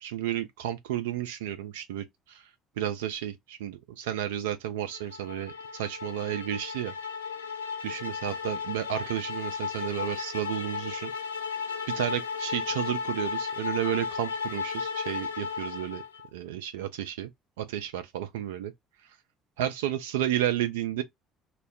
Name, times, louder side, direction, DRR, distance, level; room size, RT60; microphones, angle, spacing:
voice 1, 0.0-6.9 7.8-11.1 11.9-16.0 16.3-17.3 17.6-18.7 19.0-19.2 19.6-21.0, right 11 dB, 70° right, 0.3 m, -32 dB
sound 1, 4.9-16.3, left 6 dB, 75° left, 0.8 m, -35 dB
2.2 x 2.0 x 3.5 m
figure-of-eight pair, 55°, 0 cm